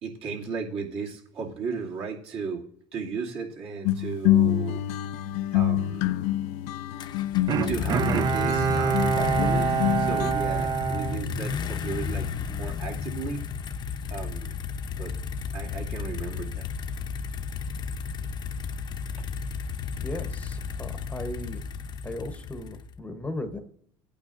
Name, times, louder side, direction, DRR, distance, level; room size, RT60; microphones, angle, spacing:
voice 1, 0.0-2.6 2.9-4.8 5.5-6.2 7.7-13.5 14.1-14.5 15.0-15.1 15.5-16.7, right 5 dB, 55° right, -3 dB, 2.4 m, -35 dB
sound 1, 3.8-10.3, left 12 dB, 75° left, 0.5 m, -26 dB
sound 2, 7.0-23.0, left 6 dB, 35° left, 0.7 m, -33 dB
Bowed string instrument, 7.5-12.0 12.4-12.5, right 7 dB, 35° right, 0.5 m, -26 dB
voice 2, 20.0-21.6 22.0-23.6, left 1 dB, 10° left, 6 dB, 0.9 m, -36 dB
16.0 x 8.7 x 2.6 m, 0.62 s
supercardioid pair, 120°, 12 cm